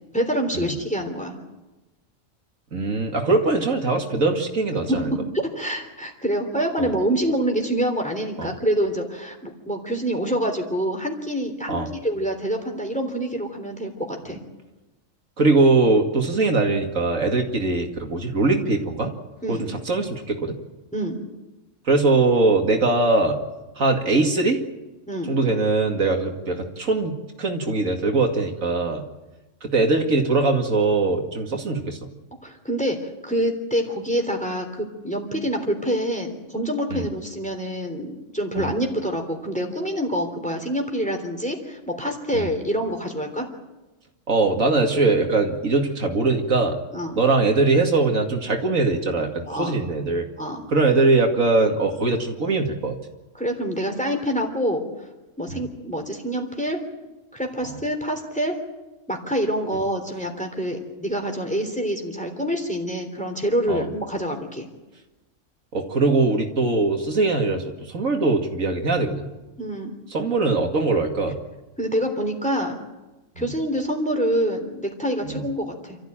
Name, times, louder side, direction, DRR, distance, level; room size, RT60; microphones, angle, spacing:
voice 1, 0.1-1.4 4.9-5.0 5.3-14.4 19.4-19.6 20.9-21.2 25.1-25.3 32.4-43.5 46.9-47.2 49.5-49.7 50.4-50.6 53.4-54.8 55.4-56.8 57.3-58.6 59.1-64.7 69.6-69.9 71.8-72.8 73.3-76.0, equal, 5° left, 3 dB, 3.3 m, -26 dB
voice 2, 2.7-5.1 6.8-6.9 8.4-8.5 11.7-11.9 15.4-19.1 19.5-20.6 21.9-23.4 23.8-24.6 25.3-29.0 29.6-32.0 36.9-37.1 38.6-38.7 42.3-42.5 44.3-46.8 47.2-50.3 50.7-53.0 55.5-55.6 57.6-57.8 63.7-63.9 65.7-69.3 70.1-71.4 73.4-73.5 75.2-75.4, right 3 dB, 85° right, 3 dB, 2.7 m, -21 dB
28.0 x 14.0 x 8.9 m, 1.1 s
omnidirectional pair, 1.4 m